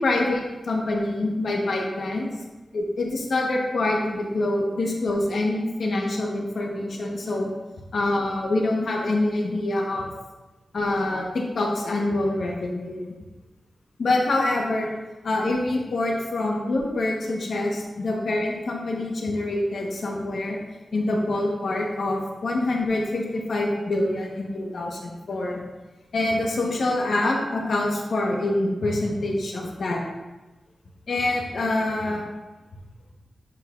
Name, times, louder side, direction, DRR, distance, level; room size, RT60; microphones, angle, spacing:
voice 1, 0.0-2.3 2.7-7.5 7.9-10.1 10.7-13.1 14.0-14.9 15.2-20.6 20.9-25.6 26.1-30.0 31.1-32.2, left 2 dB, 65° left, -1 dB, 1.2 m, -25 dB
8.7 x 5.0 x 2.5 m, 1.1 s
wide cardioid pair, 115°, 0 cm